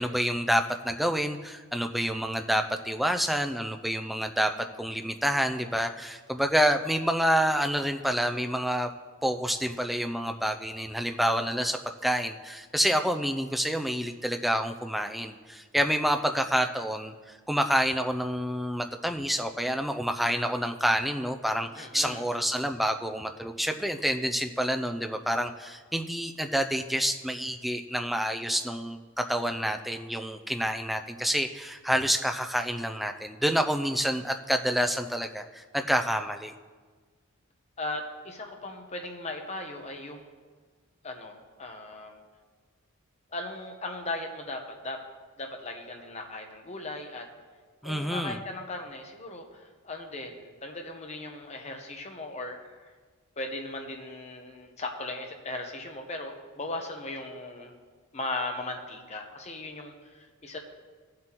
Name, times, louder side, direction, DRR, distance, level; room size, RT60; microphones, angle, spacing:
voice 1, 0.0-4.5 4.8-8.9 9.2-36.5 47.8-48.4, equal, ahead, 5 dB, 0.4 m, -28 dB
voice 2, 21.7-22.2 37.8-40.3 41.0-42.2 43.3-45.0 45.4-47.3 47.8-52.7 53.4-57.7 58.1-60.6, left 2 dB, 30° left, 4 dB, 0.9 m, -38 dB
16.5 x 7.6 x 3.0 m, 1.5 s
head